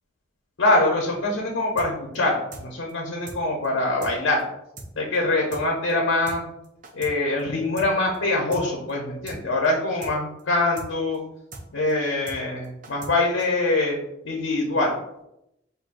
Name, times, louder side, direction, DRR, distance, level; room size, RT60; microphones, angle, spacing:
voice 1, 0.6-4.4 5.0-6.4 6.9-11.2 11.7-14.0 14.2-15.0, left 2 dB, 85° left, -1 dB, 0.7 m, -24 dB
sound 1, 1.8-1.9 2.1-2.2 2.5-2.6 2.9-3.0 3.3-3.4 3.6-3.7 4.0-4.1 4.4-4.5 4.8-4.9 5.1-5.2 5.5-5.6 5.9-6.0 6.3-6.4 6.6-7.1 7.4-7.5 7.8-8.2 8.5-8.6 8.9-9.0 9.3-9.4 9.6-9.7 10.0-10.1 10.4-10.5 10.8-10.9 11.1-11.2 11.5-11.6 11.9-12.0 12.3-12.4 12.6-13.1 13.4-13.5, right 2 dB, 40° right, 0.6 m, -39 dB
6.0 x 2.5 x 2.5 m, 0.84 s
head